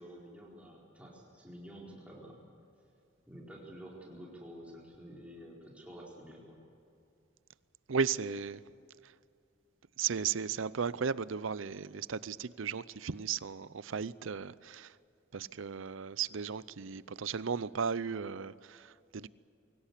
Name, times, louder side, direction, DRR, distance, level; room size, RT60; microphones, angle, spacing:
voice 1, 0.0-2.4 3.3-6.6, equal, 5° right, -3 dB, 4.5 m, -50 dB
voice 2, 7.9-8.6 10.0-14.9 15.3-19.3, right 6 dB, 75° right, 18 dB, 0.6 m, -35 dB
23.5 x 17.5 x 8.3 m, 2.6 s
head